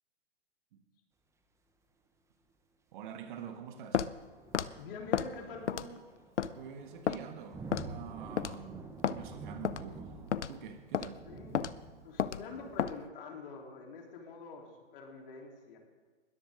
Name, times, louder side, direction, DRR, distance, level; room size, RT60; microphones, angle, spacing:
voice 1, 2.9-4.1 6.5-10.2 10.5-11.2, right 8 dB, 45° right, 7 dB, 1.6 m, -46 dB
Walk footsteps, 3.9-4.1 4.5-4.7 5.1-5.3 5.7-6.0 6.4-6.5 7.1-7.2 7.7-7.9 8.4-8.6 9.0-9.2 9.6-9.8 10.3-10.5 10.9-11.1 11.5-11.7 12.2-12.4 12.8-13.0, left 8 dB, 80° left, 0.7 m, -31 dB
sound 1, 4.2-12.9, right 3 dB, 10° right, 1.2 m, -49 dB
voice 2, 4.8-6.0 11.2-11.6 12.0-15.8, left 4 dB, 50° left, 0 dB, 3.7 m, -46 dB
21.0 x 13.5 x 3.8 m, 1.5 s
figure-of-eight pair, 120°, 35 cm